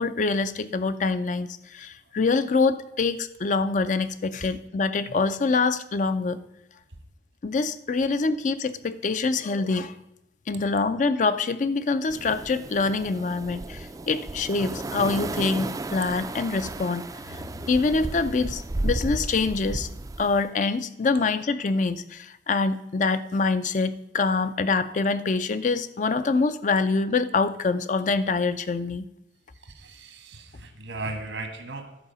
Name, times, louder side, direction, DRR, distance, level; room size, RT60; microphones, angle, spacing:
voice 1, 0.0-6.4 7.4-9.9 10.5-19.9 20.2-29.0, left 4 dB, 45° left, 12 dB, 0.4 m, -25 dB
sound 1, 12.1-20.4, right 2 dB, 20° right, 0.3 m, -34 dB
voice 2, 29.6-32.0, right 2 dB, 85° right, 7 dB, 1.4 m, -37 dB
11.0 x 4.8 x 6.8 m, 0.82 s
head